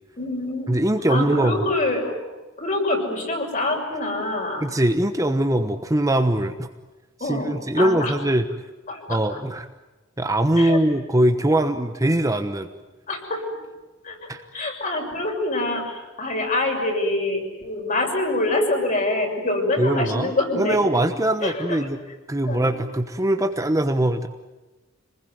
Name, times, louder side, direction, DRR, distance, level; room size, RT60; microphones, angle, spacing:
voice 1, 0.2-0.7 1.1-2.2 2.6-4.7 7.2-8.1 8.9-9.4 10.6-10.8 13.1-13.4 14.0-14.2 14.5-20.8 21.4-21.8 22.4-22.8, left 2 dB, 40° left, 1 dB, 6.5 m, -25 dB
voice 2, 0.7-1.7 4.6-6.7 7.2-8.5 9.1-9.7 10.2-12.7 14.3-14.4 19.8-20.3 20.6-22.0 22.3-24.3, right 1 dB, 15° right, 7 dB, 1.1 m, -21 dB
27.0 x 20.5 x 9.5 m, 1.1 s
head